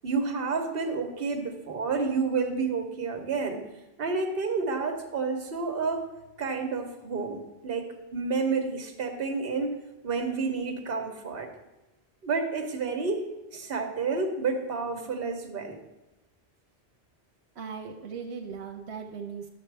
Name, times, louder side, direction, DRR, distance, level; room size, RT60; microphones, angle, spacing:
voice 1, 0.0-3.6 4.0-6.1 6.4-11.5 12.2-13.3 13.5-15.8, right 4 dB, 60° right, 5 dB, 1.2 m, -30 dB
voice 2, 17.6-19.5, right 6 dB, 85° right, 3 dB, 1.0 m, -38 dB
11.0 x 6.7 x 3.3 m, 0.99 s
omnidirectional pair, 1.1 m